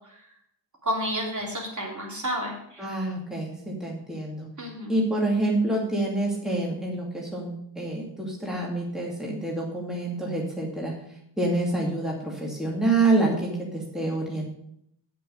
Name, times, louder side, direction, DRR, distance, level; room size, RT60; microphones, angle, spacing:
voice 1, 0.9-2.8 4.6-4.9, equal, 40° right, -2 dB, 3.4 m, -30 dB
voice 2, 2.8-4.5 4.9-10.9 11.4-14.4, right 2 dB, ahead, -2 dB, 2.4 m, -27 dB
7.7 x 7.7 x 6.6 m, 0.72 s
cardioid pair, 70°, 46 cm